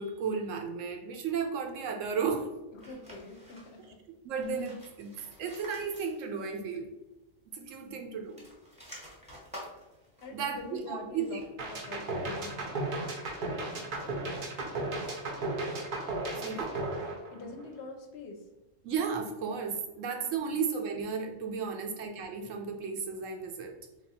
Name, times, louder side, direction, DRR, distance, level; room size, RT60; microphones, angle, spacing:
voice 1, 0.0-2.5 4.2-6.9 7.5-8.4 10.3-11.4 16.4-16.7 18.8-23.7, right 5 dB, 80° right, 3 dB, 1.0 m, -34 dB
voice 2, 2.7-4.0 7.8-8.1 10.2-13.5 16.4-16.6 17.3-18.5 20.4-20.6 21.6-21.9, left 3 dB, 65° left, 3 dB, 0.7 m, -46 dB
sound 1, 2.8-3.9 4.3-6.6 6.8-6.9 8.2-11.7, equal, 5° right, 0.8 m, -51 dB
sound 2, 11.6-17.8, right 2 dB, 50° right, 0.7 m, -35 dB
3.3 x 2.4 x 4.1 m, 1.0 s
omnidirectional pair, 1.3 m